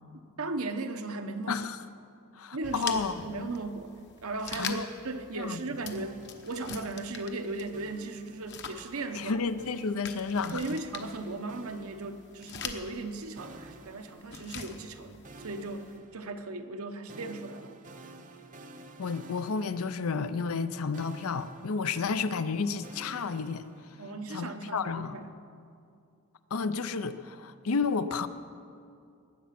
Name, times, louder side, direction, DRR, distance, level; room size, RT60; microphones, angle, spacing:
voice 1, 0.4-1.6 2.5-3.9 4.2-9.4 10.5-17.7 24.0-25.4, right 2 dB, 80° right, 7 dB, 1.0 m, -37 dB
voice 2, 2.3-3.2 4.6-4.8 5.3-5.6 9.1-10.6 19.0-23.7 24.3-25.2 26.5-28.3, left 5 dB, 75° left, 12 dB, 0.6 m, -31 dB
sound 1, 2.6-16.0, left 6 dB, 55° left, 1.0 m, -44 dB
sound 2, 5.9-7.2 7.7-8.9 9.6-12.7 13.4-14.9 15.2-20.7 20.9-24.2, right 2 dB, 35° right, 0.7 m, -52 dB
20.0 x 8.3 x 5.9 m, 2.5 s
head